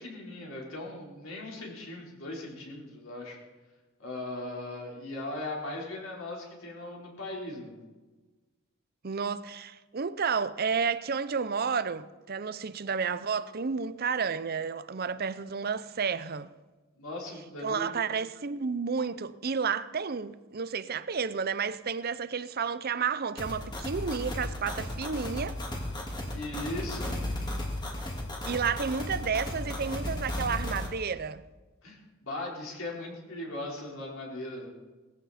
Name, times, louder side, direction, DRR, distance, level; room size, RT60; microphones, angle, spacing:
voice 1, 0.0-3.4 4.0-7.7 17.0-17.9 26.3-27.2 31.8-34.7, left 2 dB, 70° left, 4.2 m, -38 dB
voice 2, 9.0-16.5 17.6-25.6 28.4-31.4, right 6 dB, 45° right, 0.6 m, -31 dB
sound 1, 23.4-30.9, left 1 dB, 20° left, 2.2 m, -35 dB
19.0 x 14.5 x 4.3 m
head